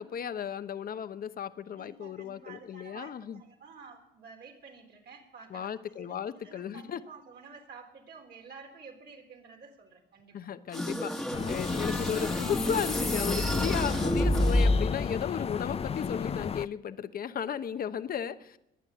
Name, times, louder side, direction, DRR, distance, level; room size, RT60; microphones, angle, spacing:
voice 1, 0.0-3.4 5.5-7.0 10.3-18.6, left 8 dB, 50° left, 12 dB, 0.9 m, -35 dB
voice 2, 1.7-10.3, right 5 dB, 60° right, 2 dB, 3.9 m, -50 dB
sound 1, 10.7-15.1, left 1 dB, ahead, 1.5 m, -28 dB
sound 2, 11.3-16.7, left 6 dB, 35° left, 0.5 m, -33 dB
22.0 x 9.0 x 6.9 m, 0.88 s
supercardioid pair, 75°, 19 cm